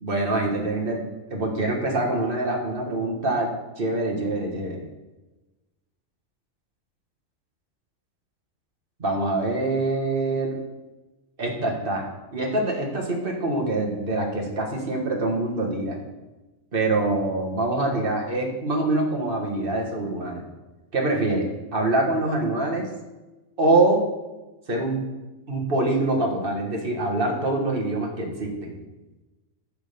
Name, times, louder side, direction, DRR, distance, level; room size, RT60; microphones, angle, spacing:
voice 1, 0.0-1.0 1.3-4.8 9.0-10.6 11.4-16.0 16.7-20.4 20.9-22.9 23.6-24.0 24.7-25.1 25.5-28.8, right 2 dB, 40° right, 0 dB, 1.6 m, -25 dB
9.9 x 3.7 x 6.7 m, 1.1 s
omnidirectional pair, 1.4 m